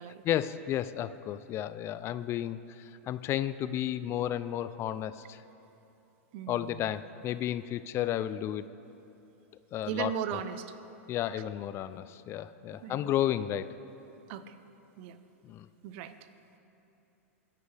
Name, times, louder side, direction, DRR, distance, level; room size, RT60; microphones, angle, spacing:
voice 1, 0.2-5.4 6.5-8.7 9.7-10.1 11.1-13.7 15.4-15.7, left 11 dB, 35° left, 14 dB, 0.4 m, -32 dB
voice 2, 6.3-6.9 9.9-10.7 11.3-11.4 12.3-12.4 12.8-13.1 14.3-14.6 15.0-15.2 15.8-16.2, right 9 dB, 55° right, 12 dB, 0.7 m, -37 dB
20.5 x 11.0 x 3.4 m, 3.0 s
hypercardioid pair, 115°, 8 cm